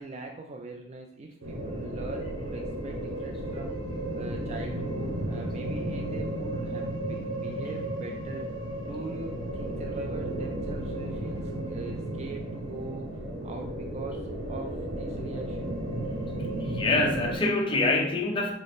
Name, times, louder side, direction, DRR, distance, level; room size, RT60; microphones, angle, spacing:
voice 1, 0.0-3.8 4.1-8.5 8.8-15.8, right 3 dB, 35° right, 2 dB, 0.3 m, -42 dB
sound 1, 1.4-17.4, right 1 dB, 75° right, 1.0 m, -34 dB
voice 2, 16.6-18.5, left 2 dB, 25° left, 1 dB, 0.7 m, -25 dB
4.9 x 2.0 x 4.0 m, 0.70 s
head